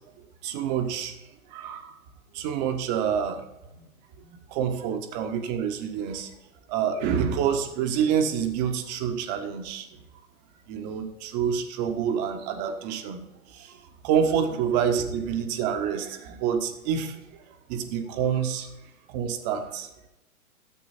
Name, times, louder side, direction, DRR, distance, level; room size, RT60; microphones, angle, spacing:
voice 1, 0.4-1.1 1.5-1.9 2.3-3.4 3.8-3.9 4.2-6.3 6.7-9.9 10.7-13.2 13.5-18.7 19.1-19.9, right 8 dB, 30° right, 7 dB, 1.5 m, -27 dB
14.0 x 8.3 x 4.3 m, 0.96 s
figure-of-eight pair, 115°, 42 cm